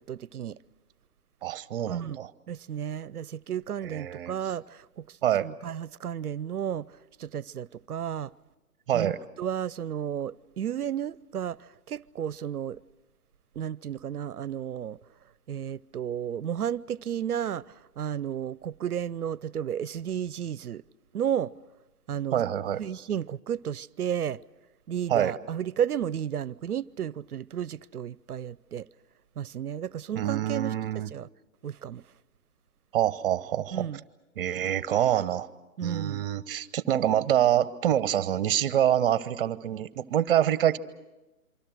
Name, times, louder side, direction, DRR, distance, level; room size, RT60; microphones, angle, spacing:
voice 1, 0.1-0.6 1.9-2.2 2.5-6.9 7.2-8.3 8.9-9.1 9.4-12.8 13.6-15.0 15.5-20.8 21.1-21.5 22.1-22.4 22.8-24.4 24.9-28.9 29.4-30.7 31.1-31.3 31.6-32.0 33.7-34.0 35.8-36.3, right 9 dB, 75° right, 0.7 m, -33 dB
voice 2, 1.4-2.3 3.8-4.3 5.2-5.5 8.9-9.2 22.3-22.8 25.1-25.3 30.1-31.1 32.9-33.9 34.4-35.5 35.8-40.8, right 11 dB, 35° right, 1.0 m, -26 dB
27.0 x 25.0 x 6.4 m
figure-of-eight pair, 130°, 45 cm